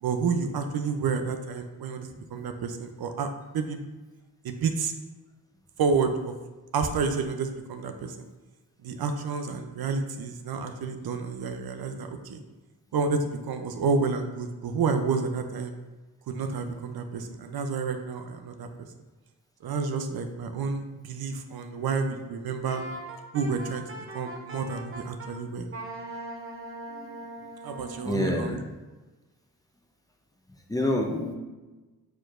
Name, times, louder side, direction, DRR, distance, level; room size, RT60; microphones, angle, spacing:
voice 1, 0.0-3.8 4.4-4.9 5.8-6.3 6.7-8.2 8.8-12.4 12.9-15.7 16.3-18.7 19.6-22.8 23.3-25.7 27.6-28.6, right 5 dB, 65° right, 7 dB, 0.5 m, -30 dB
Wind instrument woodwind instrument, 22.6-25.3 25.7-28.1, right 2 dB, 35° right, 0.8 m, -40 dB
voice 2, 28.0-28.6 30.7-31.3, left 1 dB, 10° left, 0 dB, 0.7 m, -27 dB
4.5 x 4.4 x 2.4 m, 1.2 s
cardioid pair, 70°, 40 cm